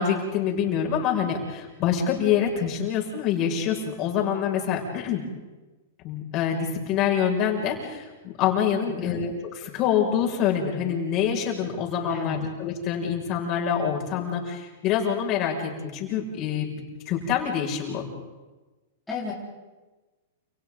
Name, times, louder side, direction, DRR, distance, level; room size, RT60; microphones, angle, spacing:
voice 1, 0.0-5.2 6.0-9.3 9.6-18.0, left 8 dB, 40° left, -1 dB, 6.2 m, -26 dB
voice 2, 8.9-9.2 12.1-12.5 19.1-19.3, left 5 dB, 5° left, -7 dB, 4.2 m, -33 dB
30.0 x 29.0 x 4.0 m, 1.2 s
hypercardioid pair, 135°, 0 cm